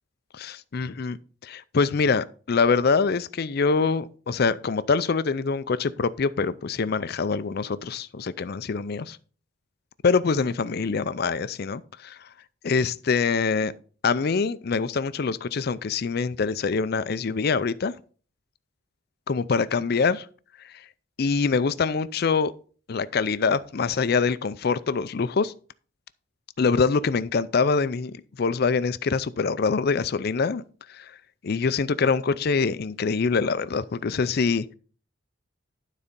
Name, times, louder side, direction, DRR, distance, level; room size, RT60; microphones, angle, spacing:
voice 1, 0.3-1.2 1.4-9.2 10.0-12.3 12.6-13.7 14.0-17.9 19.3-20.3 20.6-20.9 21.2-22.5 22.9-25.5 26.6-30.6 30.9-31.2 31.4-34.7, left 5 dB, 50° left, 0.4 m, -24 dB
12.0 x 4.2 x 5.2 m
head